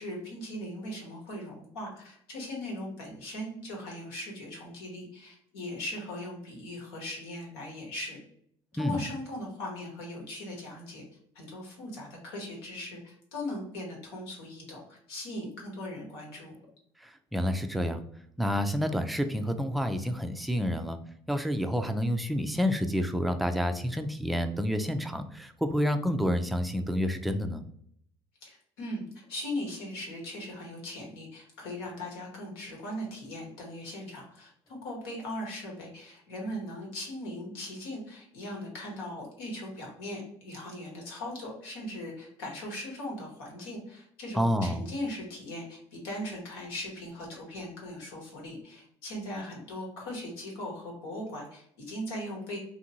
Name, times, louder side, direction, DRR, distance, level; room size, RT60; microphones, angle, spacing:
voice 1, 0.0-8.2 8.7-11.0 11.3-16.5 28.4-52.6, left 1 dB, 85° left, -1 dB, 1.1 m, -39 dB
voice 2, 17.0-18.0 18.4-21.0 21.3-27.6 44.3-44.8, equal, ahead, 7 dB, 0.4 m, -29 dB
2.8 x 2.5 x 2.7 m, 0.66 s
hypercardioid pair, 70°, 13 cm